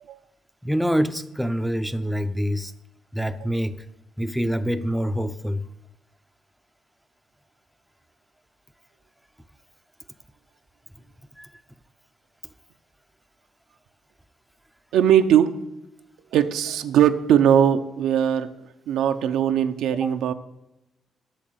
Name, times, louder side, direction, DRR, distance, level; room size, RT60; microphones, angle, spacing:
voice 1, 0.6-2.7 3.1-3.9 4.2-5.6 11.4-11.5 20.0-20.1, equal, ahead, 0.6 m, -26 dB
voice 2, 14.9-15.6 16.3-18.5 18.9-20.3, right 9 dB, 80° right, 0.6 m, -20 dB
8.5 x 6.5 x 7.8 m
cardioid pair, 90°, 0 cm